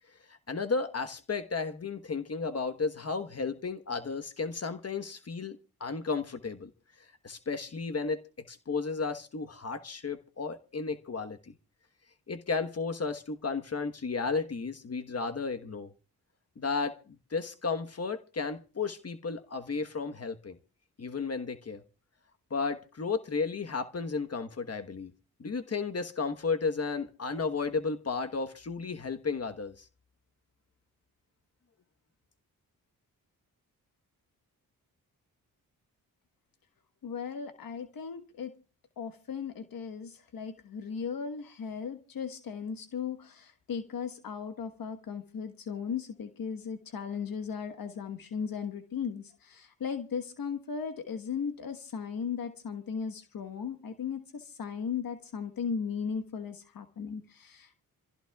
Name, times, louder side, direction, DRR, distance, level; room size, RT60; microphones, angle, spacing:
voice 1, 0.1-6.7 7.2-11.5 12.3-15.9 16.6-20.6 21.0-21.8 22.5-25.1 25.4-29.9, left 4 dB, 40° left, 1.2 m, -33 dB
voice 2, 37.0-38.5 39.0-57.7, left 6 dB, 70° left, 1.4 m, -37 dB
26.5 x 15.5 x 2.4 m
cardioid pair, 60°, 37 cm